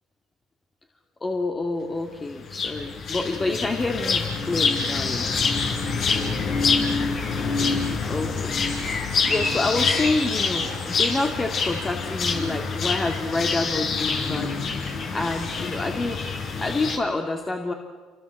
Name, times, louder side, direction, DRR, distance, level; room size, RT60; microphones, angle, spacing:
voice 1, 1.2-5.3 8.1-16.2 16.6-17.7, left 2 dB, 20° left, 3 dB, 2.3 m, -28 dB
sound 1, 2.5-17.0, left 4 dB, 50° left, 5.2 m, -26 dB
28.5 x 25.0 x 7.8 m, 1.5 s
cardioid pair, 110°, 0 cm